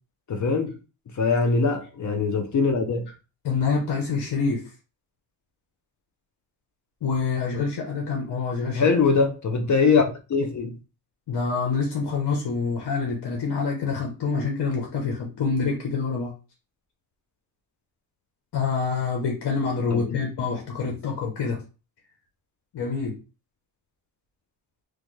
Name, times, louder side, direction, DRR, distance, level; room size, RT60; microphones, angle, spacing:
voice 1, 0.3-0.8 1.1-3.1 8.7-10.7 19.9-20.2, left 4 dB, 40° left, 0.6 m, -22 dB
voice 2, 3.4-4.6 7.0-8.9 11.3-16.3 18.5-21.6 22.7-23.2, left 5 dB, 60° left, 1.0 m, -26 dB
3.1 x 2.2 x 3.1 m
cardioid pair, 95°, 43 cm